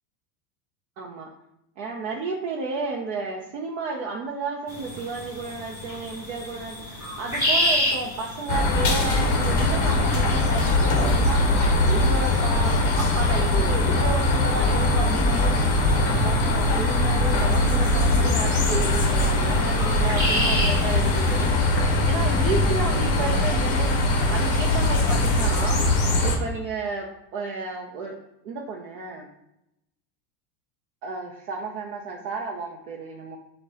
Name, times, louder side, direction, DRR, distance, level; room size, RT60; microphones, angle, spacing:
voice 1, 1.0-1.3 1.8-11.4 11.9-12.7 13.2-21.5 22.1-25.9 26.2-27.1 27.3-28.2 28.4-29.3 31.0-33.4, right 4 dB, 50° right, -1 dB, 0.7 m, -32 dB
sound 1, 4.7-21.5, equal, 5° right, 1.2 m, -32 dB
sound 2, 8.5-26.4, left 2 dB, 30° left, 0.7 m, -21 dB
6.2 x 2.3 x 3.7 m, 0.85 s
supercardioid pair, 160°, 49 cm